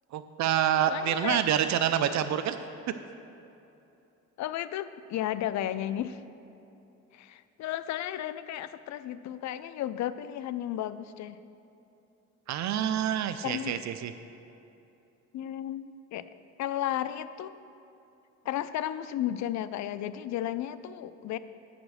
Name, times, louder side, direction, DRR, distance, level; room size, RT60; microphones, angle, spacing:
voice 1, 0.1-2.6 12.5-14.1, right 10 dB, 65° right, 10 dB, 0.5 m, -27 dB
voice 2, 0.9-1.4 4.4-6.2 7.1-11.4 13.4-13.8 15.3-16.3 16.6-17.5 18.5-21.4, left 12 dB, 65° left, 14 dB, 0.5 m, -33 dB
9.6 x 5.1 x 6.3 m, 2.9 s
cardioid pair, 90°, 30 cm